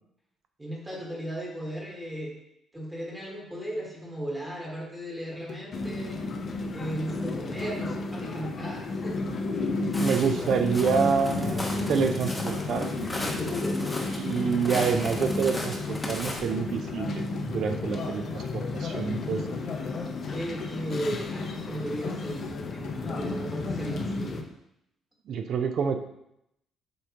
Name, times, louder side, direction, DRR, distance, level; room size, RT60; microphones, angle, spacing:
voice 1, 0.6-2.3 2.7-6.2 6.7-9.8 13.4-14.0 19.0-19.5 20.3-24.4, right 1 dB, 10° right, -3 dB, 1.3 m, -36 dB
sound 1, 5.3-5.8 6.1-6.5 7.0-7.2 7.5-8.2 8.8-8.9 9.3-24.0, left 5 dB, 80° left, 0.9 m, -41 dB
sound 2, 5.7-24.4, left 3 dB, 40° left, 0.7 m, -33 dB
Walk footsteps, 9.9-16.4, left 1 dB, 10° left, 0.9 m, -36 dB
voice 2, 10.0-13.1 14.2-19.4 25.3-26.0, right 6 dB, 55° right, 7 dB, 0.6 m, -27 dB
7.8 x 5.0 x 2.9 m, 0.79 s
cardioid pair, 165°, 0 cm